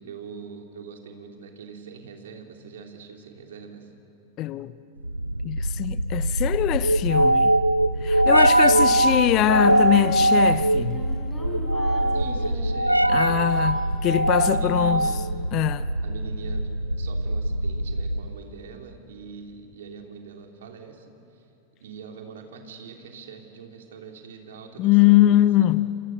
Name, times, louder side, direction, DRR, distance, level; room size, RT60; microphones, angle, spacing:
voice 1, 0.0-3.9 8.2-9.0 12.1-13.7 14.4-15.2 16.0-16.7 17.0-21.4 21.8-25.7, right 5 dB, 60° right, 3.1 m, -42 dB
voice 2, 4.4-4.7 5.4-7.6 8.0-11.0 13.1-15.1 15.5-15.9 24.8-26.0, left 14 dB, 35° left, 0.7 m, -22 dB
sound 1, 5.0-18.4, right 1 dB, 85° right, 0.5 m, -22 dB
Singing, 8.9-10.2 10.7-12.7 13.5-14.1, left 2 dB, 15° left, 5.8 m, -39 dB
29.0 x 27.5 x 6.6 m
figure-of-eight pair, 90°, 0 cm